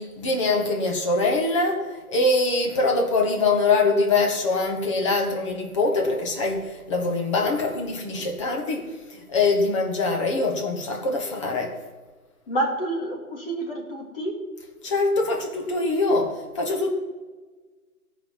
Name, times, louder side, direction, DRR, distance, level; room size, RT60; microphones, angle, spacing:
voice 1, 0.0-8.8 9.1-11.7 14.8-16.9, left 3 dB, 20° left, 1 dB, 1.4 m, -23 dB
voice 2, 12.5-14.3, right 1 dB, 40° left, 1 dB, 2.6 m, -28 dB
14.5 x 5.6 x 7.4 m, 1.3 s
figure-of-eight pair, 155°, 44 cm